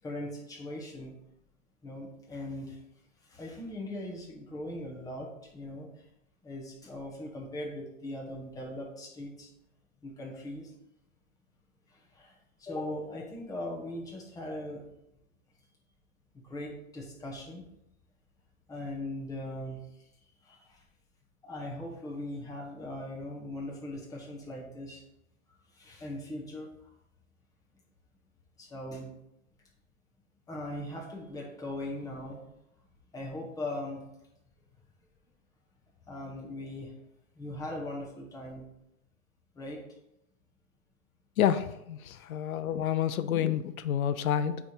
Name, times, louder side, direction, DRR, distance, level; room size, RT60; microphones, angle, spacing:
voice 1, 0.0-1.2 1.8-2.8 3.2-6.1 6.4-9.5 10.0-10.7 11.9-14.8 16.3-17.6 18.7-19.8 20.4-20.8 21.4-25.0 25.7-26.9 28.6-29.1 30.5-32.4 33.1-34.0 36.1-36.9 37.4-38.7 39.5-39.8 42.1-42.2, left 1 dB, 10° left, -2 dB, 1.3 m, -40 dB
voice 2, 41.4-44.6, left 9 dB, 85° left, 12 dB, 0.6 m, -29 dB
9.1 x 3.5 x 4.5 m, 0.82 s
hypercardioid pair, 145°, 41 cm